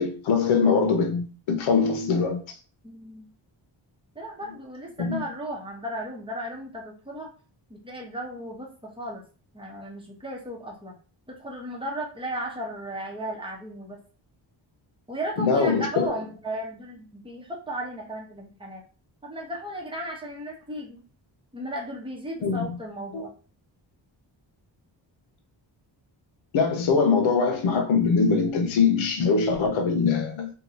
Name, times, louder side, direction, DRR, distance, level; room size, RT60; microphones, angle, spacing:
voice 1, 0.0-2.4 5.0-5.2 15.4-16.1 22.4-22.8 23.1-23.3 26.5-30.5, left 5 dB, 90° left, 0.7 m, -22 dB
voice 2, 2.8-3.3 4.1-7.3 7.7-9.2 9.5-10.9 11.3-14.0 15.1-18.8 19.2-21.0 21.5-23.3, equal, 10° right, 0.8 m, -35 dB
2.7 x 2.2 x 2.7 m
wide cardioid pair, 90°, 46 cm